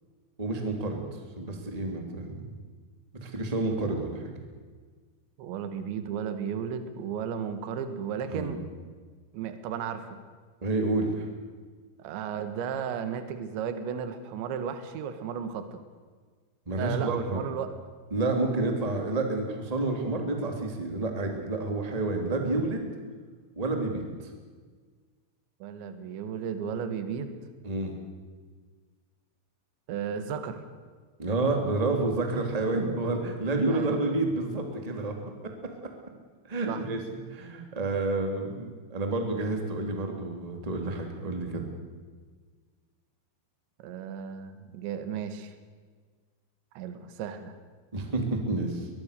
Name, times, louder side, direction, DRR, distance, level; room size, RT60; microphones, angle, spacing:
voice 1, 0.4-2.4 3.2-4.3 8.3-8.5 10.6-11.3 16.7-17.4 18.1-22.9 23.6-24.1 27.6-27.9 31.2-35.1 36.5-37.0 37.3-41.6 47.9-48.9, right 2 dB, 10° right, 3 dB, 2.2 m, -29 dB
voice 2, 5.4-8.6 9.3-10.2 12.0-15.8 16.8-17.7 25.6-27.4 29.9-30.6 33.7-34.0 36.7-36.8 43.8-45.5 46.8-47.6, right 7 dB, 75° right, 9 dB, 3.8 m, -34 dB
22.0 x 22.0 x 6.8 m, 1.5 s
omnidirectional pair, 5.5 m